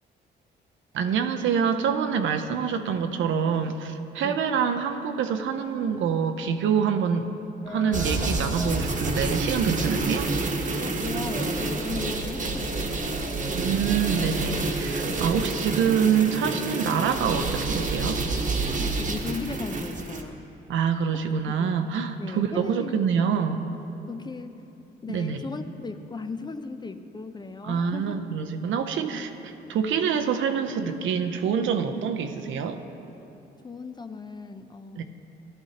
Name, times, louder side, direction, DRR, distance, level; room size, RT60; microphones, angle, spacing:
voice 1, 0.9-7.3 7.7-10.3 13.5-18.2 20.7-23.7 25.1-25.4 27.6-32.8 35.0-35.1, right 7 dB, 75° right, 7 dB, 0.7 m, -26 dB
sound 1, 7.6-13.3, left 3 dB, 70° left, 2.3 m, -43 dB
sound 2, 7.9-20.2, right 3 dB, 40° right, 1.2 m, -28 dB
voice 2, 10.8-13.4 18.8-20.4 21.6-21.7 22.2-23.1 24.1-24.6 25.0-28.2 33.6-35.0, left 4 dB, 20° left, 8 dB, 0.5 m, -37 dB
15.5 x 11.5 x 2.9 m, 3.0 s
cardioid pair, 90°, 20 cm